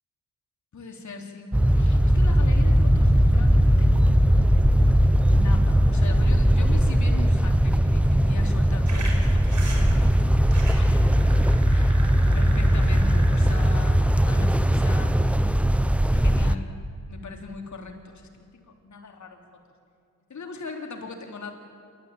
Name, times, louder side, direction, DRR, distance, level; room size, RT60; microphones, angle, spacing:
voice 1, 0.7-4.2 5.3-10.1 10.7-11.0 11.7-12.1 12.3-15.1 16.1-16.7 17.1-19.4 20.3-21.5, left 4 dB, 55° left, 3 dB, 3.5 m, -39 dB
sound 1, 1.5-16.5, equal, 5° right, 0.9 m, -19 dB
sound 2, 8.9-15.0, right 2 dB, 55° right, 5.5 m, -41 dB
27.5 x 13.0 x 8.6 m, 2.4 s
supercardioid pair, 60°, 35 cm